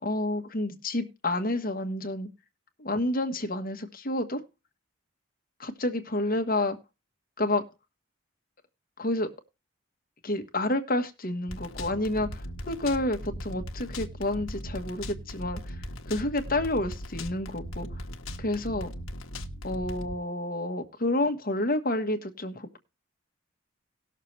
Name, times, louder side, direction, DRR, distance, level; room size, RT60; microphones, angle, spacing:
voice 1, 0.0-2.3 2.8-4.4 5.6-6.8 7.4-7.6 9.0-9.3 10.2-15.8 16.0-17.9 18.4-18.9 19.6-22.8, left 1 dB, 45° left, 1.3 m, -29 dB
sound 1, 11.5-20.1, equal, 80° left, 1.2 m, -38 dB
18.5 x 6.6 x 3.3 m
head